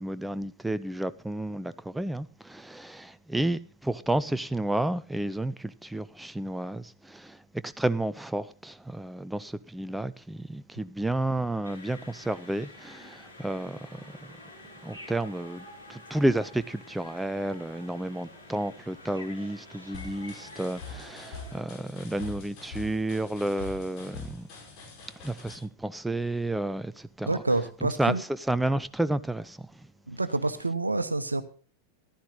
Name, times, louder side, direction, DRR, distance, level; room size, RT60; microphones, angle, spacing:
voice 1, 0.0-14.3 14.8-24.5 25.2-27.4 28.0-28.2 28.5-29.7, right 1 dB, 5° right, 0.5 m, -31 dB
sound 1, 11.6-21.6, left 1 dB, 85° left, 7.8 m, -48 dB
sound 2, 19.9-25.6, left 3 dB, 45° left, 4.6 m, -44 dB
voice 2, 27.3-28.2 30.1-31.4, right 2 dB, 80° right, 1.0 m, -28 dB
14.5 x 11.5 x 3.9 m
figure-of-eight pair, 90°, 0 cm